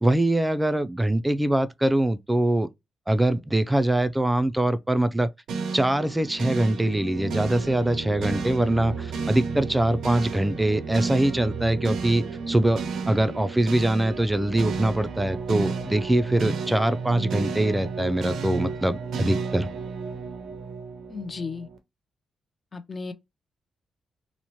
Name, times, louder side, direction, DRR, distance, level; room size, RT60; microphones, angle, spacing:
voice 1, 0.0-2.7 3.1-5.3 5.7-19.7, right 1 dB, 15° right, 0.3 m, -23 dB
sound 1, 5.5-21.8, right 5 dB, 80° right, 0.5 m, -32 dB
voice 2, 21.1-21.7 22.7-23.1, left 4 dB, 45° left, 0.5 m, -34 dB
3.0 x 2.0 x 2.8 m
supercardioid pair, 55°, 0 cm